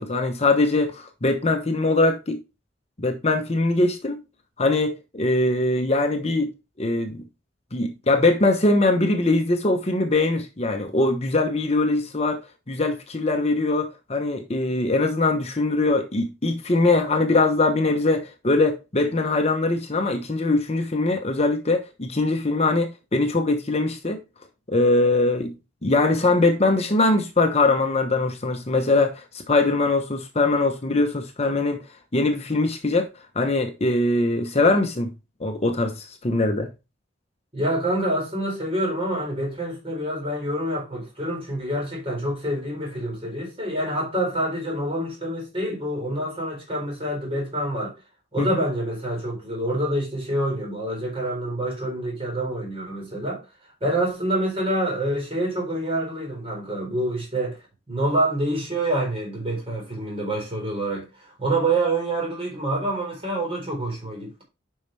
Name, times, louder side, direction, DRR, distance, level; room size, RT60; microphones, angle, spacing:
voice 1, 0.0-2.4 3.0-4.2 4.6-6.5 6.8-7.2 7.7-12.4 12.7-24.2 24.7-25.5 25.8-31.8 32.1-33.1 33.3-35.1 35.4-36.7 48.4-48.6, left 2 dB, 35° left, 1.0 m, -22 dB
voice 2, 37.5-47.9 48.3-53.4 53.8-57.6 57.9-64.4, right 1 dB, 30° right, 4.2 m, -27 dB
8.7 x 5.6 x 3.3 m
head